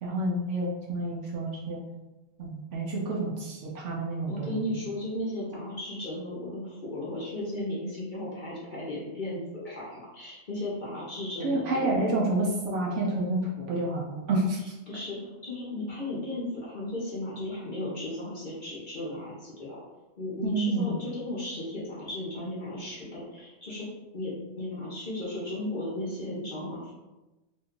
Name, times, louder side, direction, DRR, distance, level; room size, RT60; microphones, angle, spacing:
voice 1, 0.0-1.8 2.4-4.6 11.4-14.7 20.4-20.9, right 2 dB, 65° right, -3 dB, 0.9 m, -29 dB
voice 2, 4.3-11.9 14.9-19.8 20.2-23.9 24.1-26.9, left 1 dB, 40° left, -7 dB, 0.8 m, -35 dB
3.0 x 2.3 x 3.6 m, 1.1 s
omnidirectional pair, 1.4 m